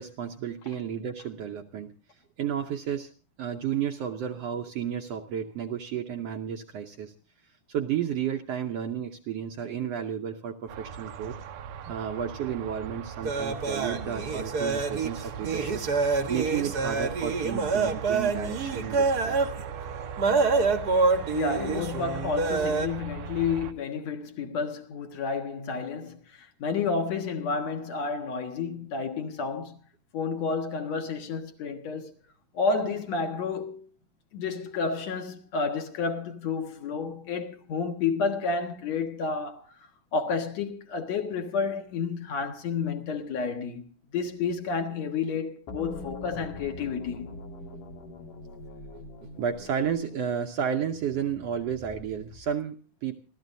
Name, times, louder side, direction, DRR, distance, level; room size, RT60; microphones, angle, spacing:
voice 1, 0.0-1.9 2.4-3.1 3.4-7.1 7.7-11.4 11.9-15.8 16.3-19.4 48.9-49.0 49.4-53.2, right 8 dB, 70° right, 1.6 m, -32 dB
sound 1, 10.7-23.7, right 8 dB, 85° right, 2.5 m, -39 dB
sound 2, 13.2-22.9, right 4 dB, 45° right, 1.2 m, -27 dB
voice 2, 21.3-29.8 30.1-32.1 32.5-33.9 34.3-39.6 40.1-47.4, left 5 dB, 60° left, 2.6 m, -30 dB
sound 3, 45.7-52.6, left 2 dB, 80° left, 3.8 m, -43 dB
30.0 x 13.0 x 2.7 m
omnidirectional pair, 3.6 m